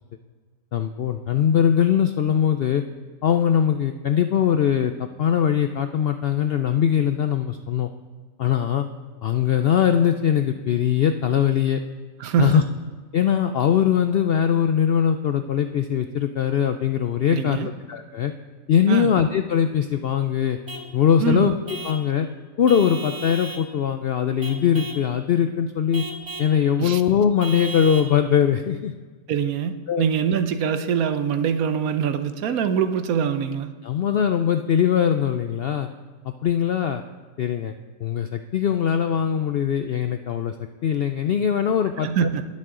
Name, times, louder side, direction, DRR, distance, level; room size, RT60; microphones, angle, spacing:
voice 1, 0.7-2.8 3.2-7.9 8.4-8.9 9.2-11.8 12.4-12.6 13.1-18.3 18.7-20.6 20.9-21.5 21.8-22.3 22.6-26.0 26.4-28.9 29.9-30.0 33.8-35.9 36.2-37.0 37.4-37.7 38.0-40.5 40.8-42.1, left 8 dB, 70° left, 8 dB, 0.5 m, -21 dB
voice 2, 12.2-12.6 17.3-17.7 18.9-19.1 21.2-21.5 26.8-27.0 29.3-33.7 42.0-42.5, right 7 dB, 80° right, 10 dB, 1.2 m, -23 dB
Vehicle horn car horn honking / Truck, 20.7-20.9 21.7-22.1 22.7-23.7 24.4-25.1 25.9-26.5 27.4-28.1, right 1 dB, 15° right, 1.0 m, -35 dB
20.5 x 7.6 x 3.8 m, 1.4 s
omnidirectional pair, 1.5 m